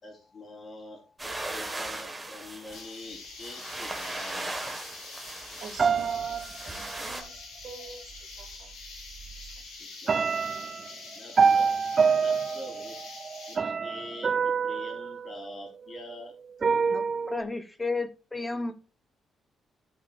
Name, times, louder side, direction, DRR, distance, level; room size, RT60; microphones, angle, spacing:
voice 1, 0.0-5.2 9.7-10.2 10.8-11.8 12.1-13.0 13.5-16.4, left 1 dB, 45° left, -1 dB, 4.1 m, -45 dB
sound 1, 1.2-7.2, right 2 dB, 15° right, 1.8 m, -38 dB
sound 2, 2.7-13.6, left 3 dB, 80° left, 3.3 m, -45 dB
voice 2, 5.6-7.3 7.6-8.0 8.4-8.7 9.8-9.9, right 5 dB, 60° right, 1 dB, 2.6 m, -45 dB
sound 3, 5.8-7.3 8.4-8.5 9.0-9.6 10.1-16.0 16.6-17.4, right 5 dB, 40° right, 0.4 m, -27 dB
voice 3, 16.9-18.7, left 3 dB, 15° left, 9 dB, 1.2 m, -33 dB
12.5 x 5.6 x 2.6 m, 0.35 s
cardioid pair, 90°, 0 cm